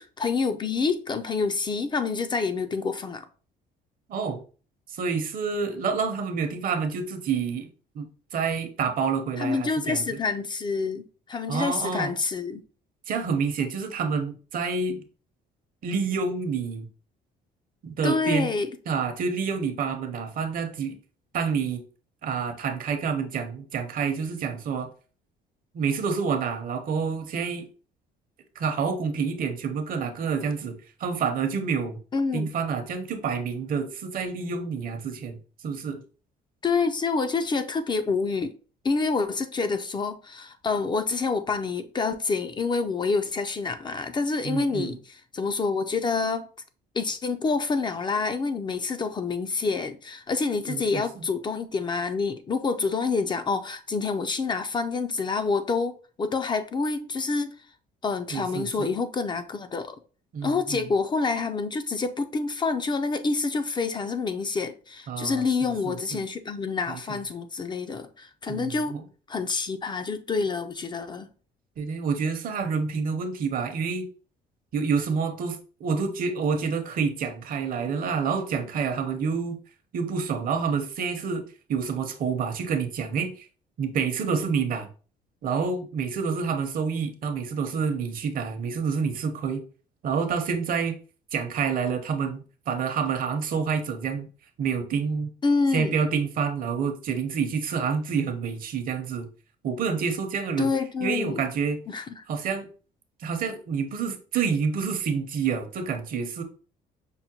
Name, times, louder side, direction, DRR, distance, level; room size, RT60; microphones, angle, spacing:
voice 1, 0.0-3.3 9.4-12.6 18.0-18.7 32.1-32.5 36.6-38.5 38.8-46.4 46.9-57.6 58.0-60.0 60.4-69.0 69.3-71.3 95.4-95.9 100.6-101.4 101.9-102.2, left 4 dB, 25° left, 0.4 m, -27 dB
voice 2, 4.1-4.4 4.9-7.7 7.9-10.0 11.5-12.1 13.1-15.0 15.8-16.9 17.8-18.5 18.9-20.9 21.3-21.8 22.2-24.9 25.7-27.7 28.6-32.0 32.3-35.4 35.6-36.0 44.4-45.0 50.7-51.3 58.3-58.9 60.3-60.8 65.1-66.2 66.9-67.2 68.5-69.0 71.8-74.1 74.7-79.6 79.9-81.4 81.7-83.5 83.8-84.9 85.4-89.6 90.0-91.0 91.3-94.3 94.6-95.3 95.7-99.3 99.6-100.7 101.0-101.8 102.3-102.7 103.2-106.4, right 5 dB, 55° right, 0.7 m, -28 dB
5.5 x 2.1 x 2.8 m
cardioid pair, 110°, 17 cm